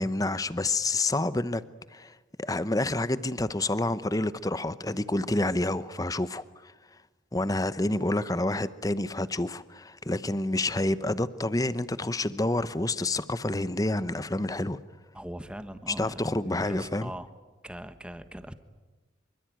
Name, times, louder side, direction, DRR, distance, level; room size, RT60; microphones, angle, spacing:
voice 1, 0.0-1.6 1.9-6.7 7.3-14.8 15.9-17.1, left 2 dB, 20° left, 15 dB, 0.9 m, -28 dB
voice 2, 15.1-16.2 16.7-17.3 17.6-18.5, right 1 dB, 5° right, 10 dB, 1.3 m, -40 dB
26.5 x 24.5 x 9.3 m, 1.2 s
head